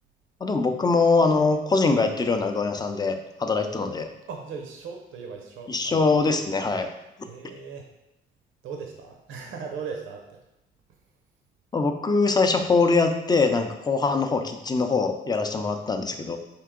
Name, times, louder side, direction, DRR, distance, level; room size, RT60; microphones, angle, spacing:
voice 1, 0.4-4.1 5.7-6.9 11.7-16.4, left 4 dB, 20° left, 6 dB, 0.5 m, -23 dB
voice 2, 4.3-6.0 7.2-7.9 8.6-10.4, right 5 dB, 90° right, 2 dB, 0.7 m, -38 dB
4.5 x 2.8 x 3.7 m, 0.94 s
cardioid pair, 90°, 20 cm